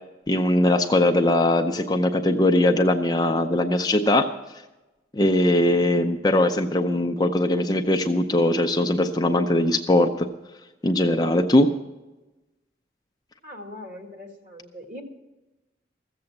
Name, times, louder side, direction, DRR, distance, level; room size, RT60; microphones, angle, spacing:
voice 1, 0.3-4.3 5.1-10.3 10.8-11.7, left 1 dB, 20° left, 5 dB, 0.5 m, -20 dB
voice 2, 13.4-15.0, left 1 dB, 45° right, 2 dB, 2.1 m, -41 dB
14.5 x 7.8 x 7.2 m, 1.1 s
head